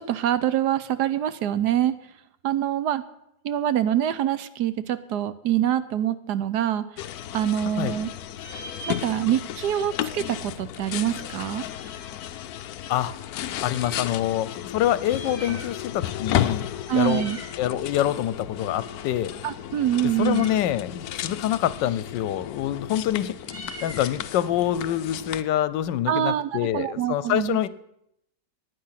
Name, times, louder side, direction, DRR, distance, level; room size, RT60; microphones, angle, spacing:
voice 1, 0.0-2.0 2.4-3.0 3.4-6.8 7.3-8.1 8.9-11.6 16.9-17.4 19.4-20.5 26.1-27.6, right 11 dB, 70° right, 14 dB, 1.3 m, -25 dB
sound 1, 7.0-25.4, left 11 dB, 65° left, 1.0 m, -33 dB
Meow, 7.0-8.0 8.3-9.6 9.9-10.0 10.1-12.3 12.9-14.1 14.9-16.0 16.3-16.5 16.8-17.6 17.9-25.8, right 1 dB, 25° right, 3.0 m, -45 dB
voice 2, 13.6-17.3 17.6-19.3 20.2-27.7, left 12 dB, 80° left, 17 dB, 1.3 m, -26 dB
15.5 x 9.8 x 5.8 m, 0.78 s
omnidirectional pair, 1.9 m